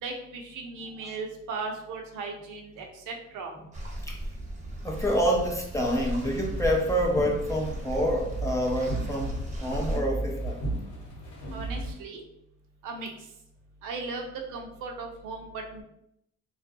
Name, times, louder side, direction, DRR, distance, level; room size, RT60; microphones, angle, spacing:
voice 1, 0.0-3.5 11.5-12.2 12.8-13.1 13.8-15.8, right 4 dB, 85° right, 2 dB, 0.6 m, -37 dB
sound 1, 3.7-10.0, right 1 dB, 25° right, 0.7 m, -37 dB
voice 2, 4.8-10.6, equal, 10° left, -1 dB, 0.4 m, -27 dB
sound 2, 6.1-11.9, right 1 dB, 80° left, 1.2 m, -35 dB
2.3 x 2.3 x 2.6 m, 0.78 s
cardioid pair, 90°, 30 cm